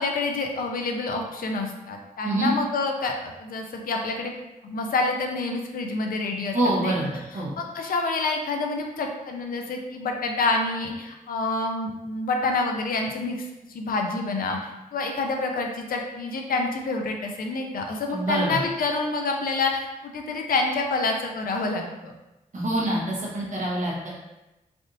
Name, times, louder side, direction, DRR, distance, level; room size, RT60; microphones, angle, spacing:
voice 1, 0.0-4.3 4.6-6.6 6.8-6.9 7.6-13.4 13.7-14.6 14.9-22.1, left 3 dB, 70° left, 3 dB, 0.4 m, -27 dB
voice 2, 6.5-7.5 18.1-18.6 22.5-24.1, right 1 dB, 55° right, -5 dB, 1.0 m, -25 dB
3.4 x 2.6 x 2.6 m, 1.0 s
wide cardioid pair, 165°, 15 cm